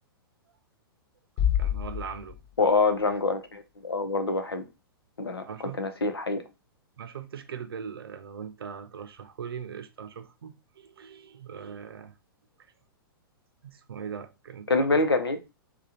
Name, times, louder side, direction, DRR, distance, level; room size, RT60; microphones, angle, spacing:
sound 1, 1.4-2.8, left 10 dB, 45° left, 1.1 m, -28 dB
voice 1, 1.5-2.4 3.1-3.2 5.4-5.8 7.0-12.2 12.6-12.7 13.6-15.0, right 7 dB, 75° right, 0.6 m, -40 dB
voice 2, 2.6-4.6 5.2-5.4 5.8-6.4 14.7-15.4, left 3 dB, 90° left, 0.7 m, -25 dB
3.4 x 2.3 x 2.8 m
hypercardioid pair, 110°, 12 cm